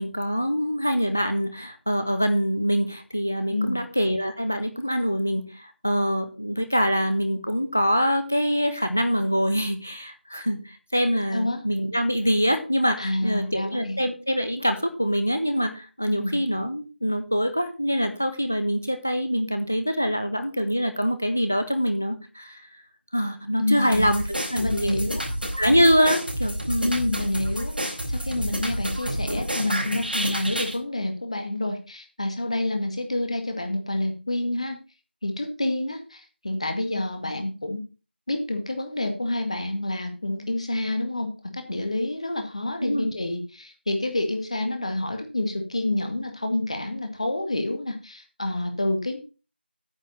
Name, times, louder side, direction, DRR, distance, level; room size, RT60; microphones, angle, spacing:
voice 1, 0.0-22.6 23.1-24.2 24.5-25.2 25.6-26.9 42.8-43.2, equal, 10° left, 9 dB, 0.4 m, -24 dB
voice 2, 3.5-3.8 11.3-11.6 13.0-14.0 16.1-16.4 23.6-24.1 24.6-25.2 26.8-34.8 35.2-37.8 38.3-49.2, left 1 dB, 35° left, 5 dB, 2.1 m, -28 dB
sound 1, 23.9-30.8, equal, 55° right, 4.5 m, -29 dB
9.6 x 6.8 x 5.7 m, 0.33 s
figure-of-eight pair, 175°, 6 cm